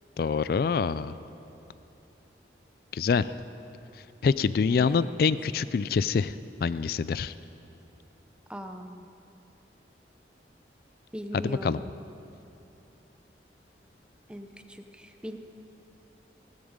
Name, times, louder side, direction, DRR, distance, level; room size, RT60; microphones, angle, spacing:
voice 1, 0.2-1.2 2.9-3.3 4.2-6.4 6.6-7.3 11.3-11.8, left 5 dB, 55° left, 16 dB, 0.3 m, -25 dB
voice 2, 4.7-5.2 8.5-9.1 11.1-11.9 14.3-14.5 14.9-15.4, equal, 5° right, 6 dB, 0.7 m, -39 dB
17.0 x 16.0 x 5.1 m, 2.7 s
head